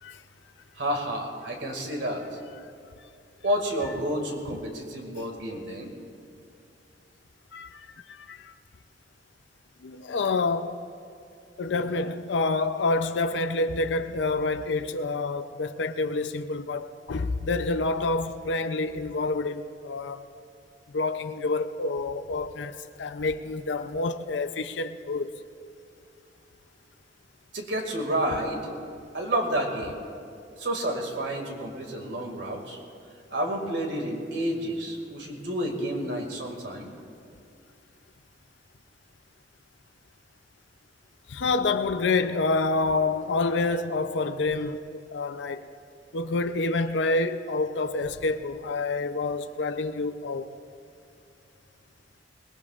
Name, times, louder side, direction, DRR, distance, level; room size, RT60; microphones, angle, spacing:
voice 1, 0.8-2.2 3.4-5.9 27.5-28.8 29.1-30.0 30.6-32.8 33.3-36.9, right 1 dB, 85° right, 2.2 m, -30 dB
voice 2, 7.5-8.5 9.8-10.8 11.6-20.3 20.9-25.4 41.3-45.7 46.1-50.5, left 3 dB, 85° left, 0.5 m, -28 dB
22.5 x 19.0 x 2.4 m
head